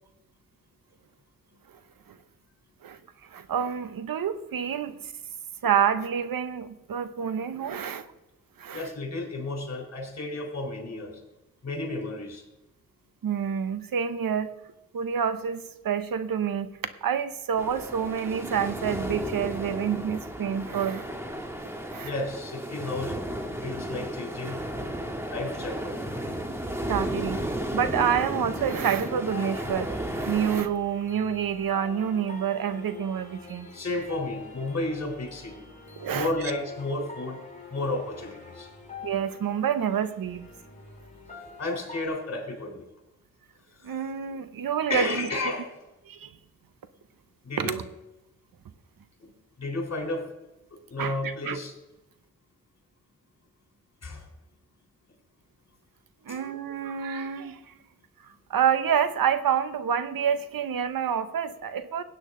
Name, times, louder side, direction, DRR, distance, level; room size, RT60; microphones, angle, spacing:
voice 1, 2.8-5.1 5.6-8.1 8.6-8.9 13.2-14.5 14.9-16.7 17.0-21.1 21.5-21.6 21.9-22.1 26.9-33.7 36.0-36.5 39.0-40.5 43.8-45.3 46.1-46.3 47.6-47.8 51.0-51.6 56.3-57.7 58.2-62.0, right 8 dB, 90° right, 12 dB, 0.8 m, -28 dB
voice 2, 8.7-11.2 11.6-12.4 22.0-23.2 23.6-24.6 25.3-26.0 33.7-35.7 36.1-37.4 37.7-38.7 41.6-42.9 43.8-44.0 44.9-45.7 47.4-47.8 49.2-49.3 49.6-50.3 50.7-51.7 54.0-54.3 56.3-56.4, left 2 dB, 50° left, 2 dB, 3.7 m, -32 dB
sound 1, 17.6-30.6, equal, 10° right, 1.5 m, -34 dB
sound 2, 28.6-42.1, left 4 dB, 20° left, 3.3 m, -45 dB
16.5 x 8.9 x 3.8 m, 0.96 s
wide cardioid pair, 75°, 33 cm